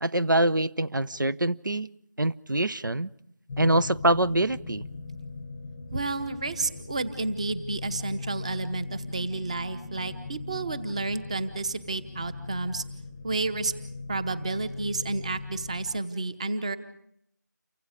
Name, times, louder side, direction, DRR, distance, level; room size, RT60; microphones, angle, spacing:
voice 1, 0.0-1.9 2.2-3.1 3.6-4.8, right 1 dB, 85° right, 15 dB, 0.9 m, -24 dB
sound 1, 3.5-16.0, left 3 dB, 10° left, 0.8 m, -40 dB
voice 2, 5.9-12.8 13.2-13.7 14.1-16.8, right 3 dB, 20° right, 12 dB, 1.0 m, -31 dB
29.5 x 24.5 x 5.0 m, 0.72 s
figure-of-eight pair, 170°, 10 cm